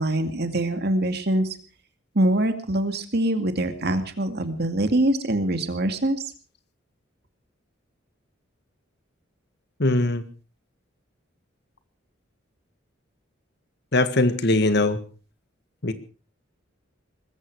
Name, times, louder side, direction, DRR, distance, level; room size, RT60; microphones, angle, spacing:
voice 1, 0.0-1.5 2.2-6.2, right 1 dB, 55° right, 2.2 m, -24 dB
voice 2, 9.8-10.2 13.9-15.0 15.8-15.9, left 2 dB, 55° left, 1.7 m, -21 dB
20.5 x 15.0 x 4.7 m
head